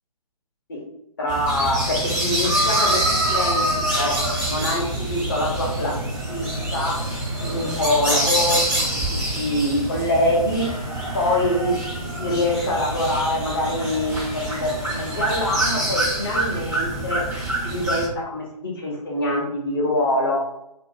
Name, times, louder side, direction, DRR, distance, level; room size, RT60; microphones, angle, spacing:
voice 1, 1.2-4.2 4.5-7.0 7.4-10.7 11.1-11.8 12.2-17.3 17.6-20.4, left 1 dB, 35° left, -2 dB, 0.6 m, -24 dB
sound 1, 1.3-18.1, right 1 dB, 5° right, 0.4 m, -25 dB
2.5 x 2.0 x 2.4 m, 0.81 s
figure-of-eight pair, 135°, 20 cm